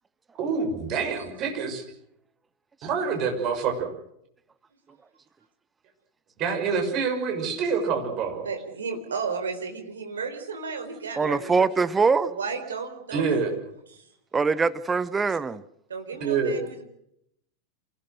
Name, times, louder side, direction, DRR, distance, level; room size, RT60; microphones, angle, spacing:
voice 1, 0.4-1.8 2.8-3.9 6.4-8.4 13.1-13.5 16.2-16.6, right 5 dB, 35° right, 6.5 m, -26 dB
voice 2, 8.4-11.7 12.2-13.5 13.9-14.1 15.9-16.8, right 5 dB, 70° right, 4.2 m, -33 dB
voice 3, 11.2-12.3 14.3-15.6, right 4 dB, 15° right, 0.9 m, -23 dB
28.0 x 18.0 x 6.5 m
figure-of-eight pair, 90°, 0 cm